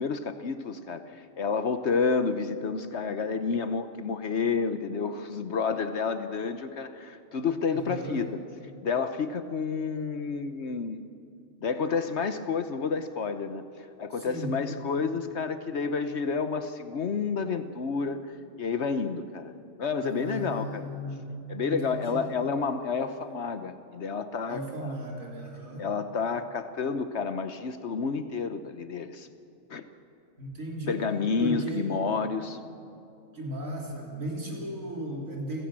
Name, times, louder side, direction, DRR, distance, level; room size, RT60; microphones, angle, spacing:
voice 1, 0.0-8.4 8.8-11.0 11.6-13.6 14.0-19.5 19.8-20.9 21.5-24.6 25.8-29.3 29.7-29.8 30.9-32.6, left 5 dB, 60° left, 10 dB, 1.1 m, -30 dB
voice 2, 7.7-8.3 14.1-14.5 20.0-21.3 21.7-22.3 24.5-25.9 30.4-31.0 31.4-31.9 33.3-35.7, right 1 dB, 85° right, -1 dB, 3.9 m, -36 dB
28.5 x 16.0 x 7.5 m, 2.7 s
omnidirectional pair, 1.4 m